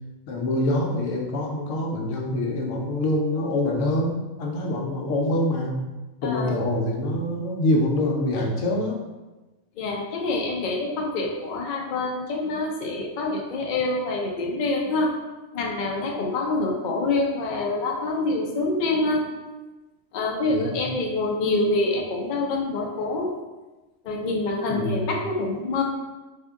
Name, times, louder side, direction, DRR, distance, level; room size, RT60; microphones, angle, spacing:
voice 1, 0.3-5.7 6.2-9.0 20.5-20.9 24.7-25.1, left 1 dB, 80° left, 0 dB, 1.0 m, -25 dB
voice 2, 6.2-6.6 9.8-15.1 15.5-19.3 20.1-23.3 24.0-25.8, left 2 dB, 55° left, 0 dB, 0.6 m, -26 dB
3.6 x 2.6 x 3.5 m, 1.1 s
omnidirectional pair, 1.3 m